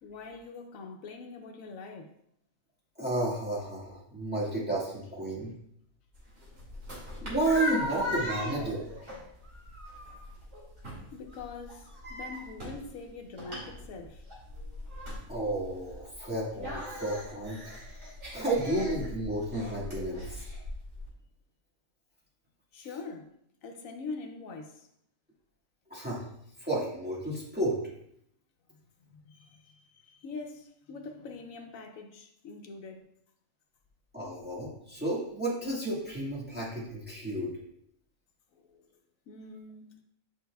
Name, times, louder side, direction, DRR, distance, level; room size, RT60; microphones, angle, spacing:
voice 1, 0.0-2.1 10.0-10.3 11.1-14.2 22.7-23.3 23.6-24.9 29.1-33.1 38.5-38.9 39.3-40.0, left 4 dB, 80° left, 1.1 m, -44 dB
voice 2, 3.0-5.5 7.2-8.9 15.3-17.7 18.3-20.5 25.9-26.3 26.6-27.8 34.1-37.5, right 1 dB, 5° right, 1.7 m, -32 dB
sound 1, 6.1-21.1, left 1 dB, 60° right, 2.6 m, -39 dB
8.5 x 5.3 x 2.3 m
omnidirectional pair, 1.4 m